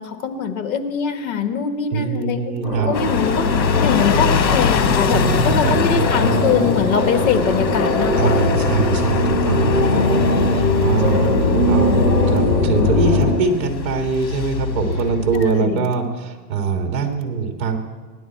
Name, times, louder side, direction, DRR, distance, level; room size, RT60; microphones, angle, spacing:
voice 1, 0.0-2.5 2.9-3.5 3.8-8.5 11.0-11.7 15.4-15.9, left 6 dB, 55° left, 7 dB, 1.3 m, -23 dB
voice 2, 1.9-2.9 5.1-6.5 8.2-17.8, right 5 dB, 30° right, 5 dB, 1.6 m, -23 dB
sound 1, 2.6-13.3, left 1 dB, 25° left, 3.6 m, -21 dB
sound 2, 2.9-15.5, left 5 dB, 80° left, 1.2 m, -22 dB
16.5 x 11.0 x 4.4 m, 1.4 s
hypercardioid pair, 150°, 50 cm